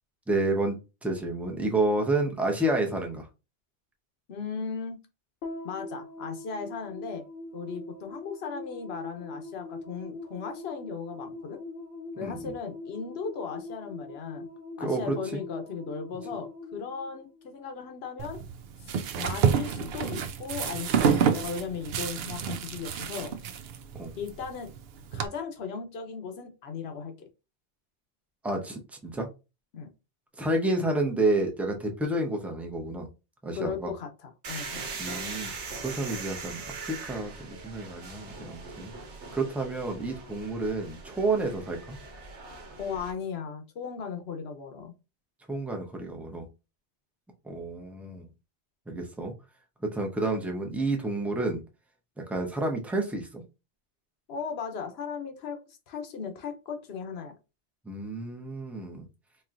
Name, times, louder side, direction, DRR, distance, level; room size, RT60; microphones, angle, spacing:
voice 1, 0.3-0.8 1.0-3.3 12.2-12.5 14.8-15.4 23.9-24.1 28.4-29.3 30.4-33.1 33.4-33.9 35.0-38.9 39.3-42.0 45.5-46.5 47.4-48.3 48.9-49.3 49.8-51.6 52.3-53.4 57.9-59.1, right 2 dB, ahead, 2 dB, 0.6 m, -30 dB
voice 2, 4.3-5.0 5.6-7.3 7.5-11.6 12.2-14.5 14.8-18.4 18.8-23.4 24.2-24.7 25.1-27.1 29.7-29.9 33.6-34.8 42.8-44.9 54.3-55.6 55.9-57.3, left 6 dB, 65° left, 6 dB, 1.0 m, -37 dB
sound 1, 5.4-17.9, left 2 dB, 85° left, 1.3 m, -42 dB
sound 2, 18.2-25.3, right 7 dB, 65° right, 0.7 m, -29 dB
sound 3, 34.4-43.1, right 4 dB, 85° right, 1.2 m, -41 dB
4.3 x 2.9 x 2.5 m, 0.28 s
omnidirectional pair, 1.2 m